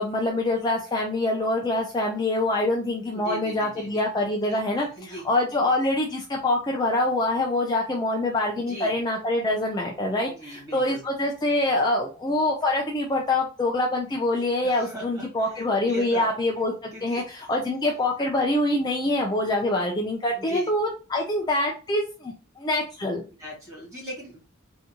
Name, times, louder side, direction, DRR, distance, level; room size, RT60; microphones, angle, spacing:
voice 1, 0.0-4.9 5.2-16.7 17.0-23.2, left 1 dB, 20° left, -1 dB, 0.4 m, -25 dB
voice 2, 3.0-4.0 4.4-5.3 8.6-9.0 10.3-11.0 14.6-16.3 16.9-17.2 20.4-20.7 23.4-24.4, right 1 dB, 15° right, -5 dB, 1.9 m, -39 dB
3.6 x 2.6 x 2.8 m, 0.33 s
head